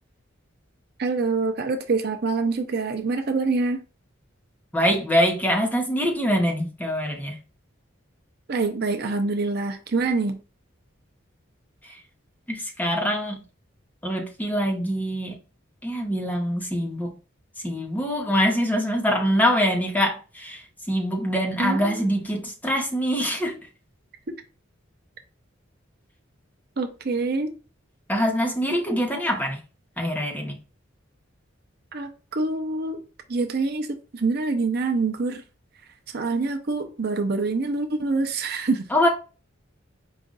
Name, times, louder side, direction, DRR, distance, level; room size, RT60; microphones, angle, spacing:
voice 1, 1.0-3.8 8.5-10.4 21.6-22.0 24.3-24.4 26.8-27.5 31.9-33.0 33.3-35.4 36.1-38.9, right 3 dB, 50° right, 0.6 m, -25 dB
voice 2, 4.7-7.4 11.8-12.0 12.5-13.4 14.0-15.3 15.8-17.2 17.6-23.6 28.1-29.6 30.0-30.6 38.9-39.1, equal, 10° left, 0.9 m, -24 dB
4.9 x 2.5 x 3.8 m
head